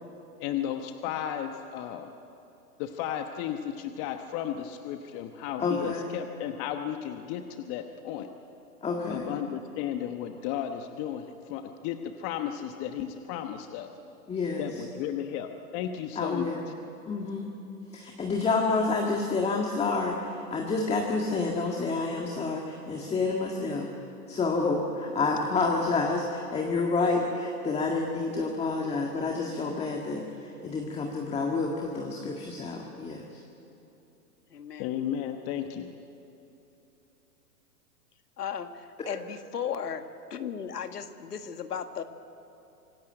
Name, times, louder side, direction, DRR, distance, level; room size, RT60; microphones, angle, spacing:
voice 1, 0.4-2.1 2.8-8.3 9.1-13.9 14.6-16.5 34.8-35.9, left 10 dB, 30° left, 6 dB, 1.1 m, -34 dB
voice 2, 5.6-6.1 8.8-9.3 14.3-14.6 16.2-16.6 17.1-17.5 17.9-23.9 24.3-26.2 26.5-33.4 39.0-39.2, left 3 dB, 15° left, 1 dB, 1.8 m, -29 dB
voice 3, 34.5-34.9 38.4-40.1 40.3-42.0, left 8 dB, 85° left, 8 dB, 1.8 m, -35 dB
26.0 x 16.5 x 9.1 m, 2.9 s
hypercardioid pair, 130°, 46 cm